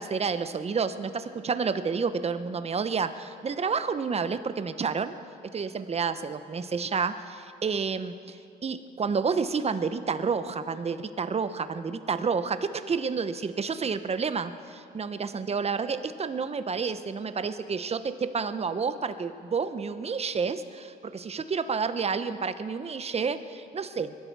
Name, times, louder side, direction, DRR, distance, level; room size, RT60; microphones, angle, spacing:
voice 1, 0.0-5.1 5.5-8.4 8.6-24.1, right 5 dB, 30° right, 11 dB, 0.8 m, -30 dB
21.5 x 12.0 x 4.7 m, 2.4 s
cardioid pair, 90°, 20 cm